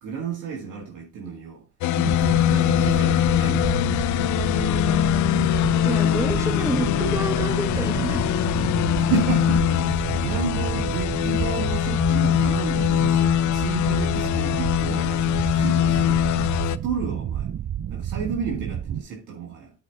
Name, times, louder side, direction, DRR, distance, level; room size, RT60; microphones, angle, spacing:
voice 1, 0.0-1.6 1.9-3.8 9.0-16.3 16.6-17.5 17.9-19.7, right 6 dB, 75° right, 2.1 m, -32 dB
sound 1, 1.8-16.8, left 13 dB, 65° left, 0.5 m, -22 dB
sound 2, 2.0-19.0, right 10 dB, 40° right, 0.5 m, -30 dB
voice 2, 5.7-8.6, right 2 dB, 10° right, 1.4 m, -29 dB
9.1 x 4.9 x 3.4 m
cardioid pair, 85°, 31 cm